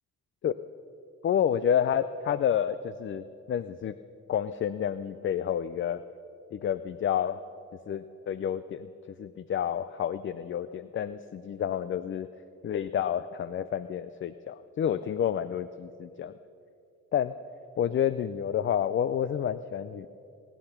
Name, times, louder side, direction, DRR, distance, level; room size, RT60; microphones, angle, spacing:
voice 1, 1.2-3.9 4.3-6.0 6.5-7.4 7.9-8.9 9.2-12.3 12.6-16.3 17.1-17.3 17.8-20.1, left 9 dB, 40° left, 14 dB, 0.5 m, -29 dB
23.0 x 10.0 x 5.8 m, 2.7 s
cardioid pair, 90°, 30 cm